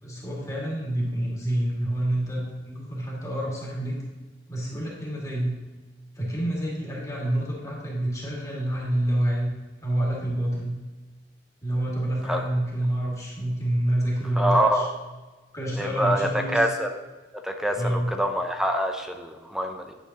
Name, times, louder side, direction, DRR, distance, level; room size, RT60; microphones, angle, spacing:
voice 1, 0.0-4.0 4.5-5.5 6.2-9.5 9.8-10.7 11.6-14.9 15.5-16.6 17.8-18.1, right 1 dB, 20° left, -5 dB, 2.0 m, -27 dB
voice 2, 14.4-14.9 15.8-16.9 17.4-19.9, right 1 dB, 5° right, 4 dB, 0.5 m, -25 dB
9.7 x 6.9 x 2.9 m, 1.2 s
head